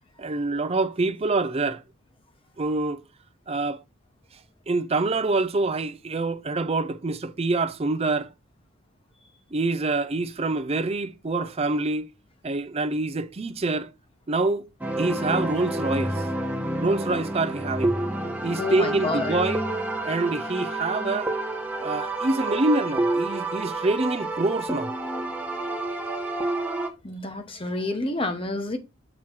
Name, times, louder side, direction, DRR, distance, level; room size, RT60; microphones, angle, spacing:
voice 1, 0.2-1.8 2.6-3.0 3.5-3.8 4.7-8.3 9.5-12.1 12.4-13.9 14.3-14.7 15.0-16.3 16.8-18.0 18.4-19.6 20.0-21.3 21.8-24.9, right 2 dB, 30° right, 0.5 m, -26 dB
sound 1, 14.8-26.9, right 2 dB, 5° right, 1.0 m, -29 dB
voice 2, 18.6-19.4 27.0-28.8, left 2 dB, 25° left, 1.0 m, -29 dB
7.2 x 3.1 x 6.1 m
head